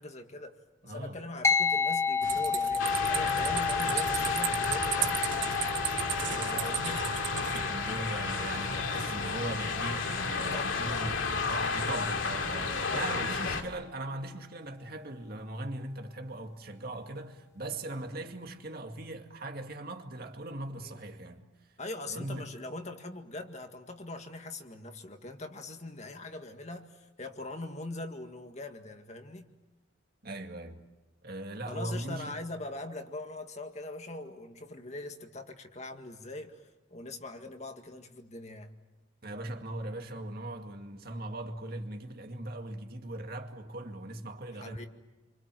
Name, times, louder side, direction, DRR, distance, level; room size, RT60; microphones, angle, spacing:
voice 1, 0.0-5.2 6.3-7.0 10.4-10.8 12.9-13.6 20.8-21.0 21.8-29.5 31.7-38.7 44.6-44.9, left 2 dB, 35° left, 1.9 m, -42 dB
voice 2, 0.8-1.2 6.8-7.1 7.4-21.5 22.1-22.5 30.2-30.9 31.2-32.4 39.2-44.9, right 1 dB, 50° right, 2.2 m, -39 dB
sound 1, 1.4-11.2, left 5 dB, 15° left, 1.0 m, -33 dB
sound 2, 2.2-7.6, right 12 dB, 70° right, 1.4 m, -35 dB
sound 3, 2.8-13.6, left 4 dB, 80° left, 2.6 m, -32 dB
30.0 x 25.0 x 7.7 m
head